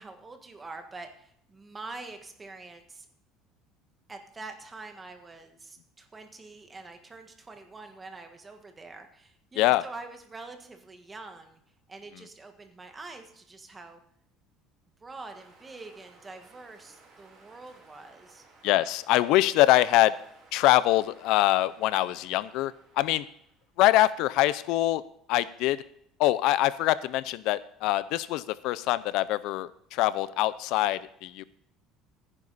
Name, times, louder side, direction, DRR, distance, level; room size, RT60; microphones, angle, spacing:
voice 1, 0.0-3.1 4.1-11.6 11.9-14.0 15.0-18.4, right 3 dB, 15° right, 6 dB, 1.5 m, -45 dB
sound 1, 15.3-23.7, right 3 dB, 35° right, 3.9 m, -58 dB
voice 2, 18.6-20.1 20.5-23.2 23.8-25.0 25.3-25.8 26.2-31.4, left 15 dB, 65° left, 17 dB, 0.5 m, -24 dB
15.0 x 10.0 x 4.1 m, 0.70 s
cardioid pair, 160°, 0 cm